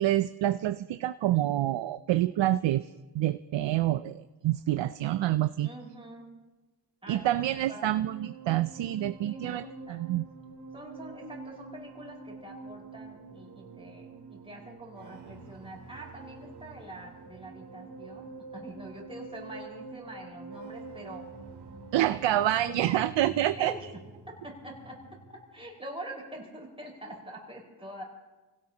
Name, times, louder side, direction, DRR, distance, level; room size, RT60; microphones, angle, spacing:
voice 1, 0.0-2.9 3.1-5.7 7.1-10.3 21.9-23.7, right 13 dB, 85° right, 12 dB, 0.5 m, -27 dB
voice 2, 5.6-6.4 7.0-8.0 9.2-10.1 10.7-21.3 22.0-22.2 22.5-23.2 23.6-24.0 24.3-28.0, right 1 dB, 15° right, -2 dB, 5.2 m, -45 dB
sound 1, 7.1-25.6, right 3 dB, 60° right, 2.6 m, -47 dB
29.0 x 17.0 x 2.9 m, 1.2 s
wide cardioid pair, 100°, 43 cm